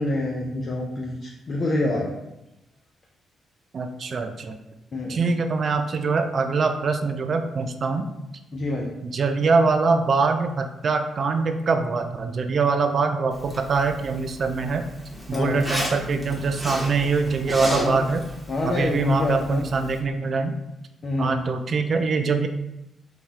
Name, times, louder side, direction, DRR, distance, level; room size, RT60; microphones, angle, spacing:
voice 1, 0.0-2.1 4.9-5.2 8.5-8.9 15.3-15.6 17.6-18.0 18.5-19.6 21.0-21.4, left 2 dB, 50° left, -2 dB, 0.5 m, -26 dB
voice 2, 3.7-4.6 5.1-8.1 9.0-14.8 15.3-18.2 18.7-20.5 21.2-22.5, right 4 dB, 55° right, 7 dB, 0.3 m, -23 dB
Zipper (clothing), 13.3-20.0, equal, 5° right, 1.0 m, -34 dB
2.8 x 2.2 x 3.2 m, 0.90 s
hypercardioid pair, 45°, 0 cm